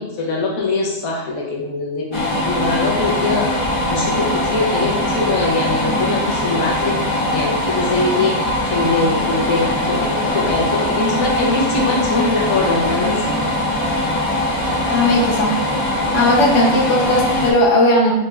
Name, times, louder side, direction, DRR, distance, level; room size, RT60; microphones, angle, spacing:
voice 1, 0.0-7.0 7.3-13.4, left 3 dB, 85° left, -2 dB, 1.2 m, -22 dB
sound 1, 2.1-17.5, left 1 dB, 25° left, 0.7 m, -21 dB
voice 2, 14.9-15.6 16.1-18.1, left 1 dB, 65° left, -2 dB, 1.1 m, -16 dB
4.8 x 3.2 x 2.3 m, 0.96 s
omnidirectional pair, 1.4 m